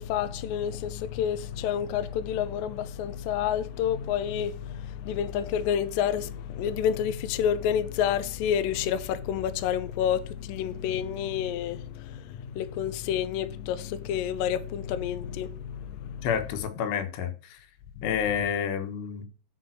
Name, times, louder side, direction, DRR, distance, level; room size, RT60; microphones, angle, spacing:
voice 1, 0.0-16.3 18.0-18.2, left 9 dB, 90° left, 2.0 m, -29 dB
voice 2, 16.2-17.6 18.0-19.2, left 7 dB, 75° left, 3.3 m, -29 dB
10.5 x 5.4 x 6.5 m
omnidirectional pair, 5.2 m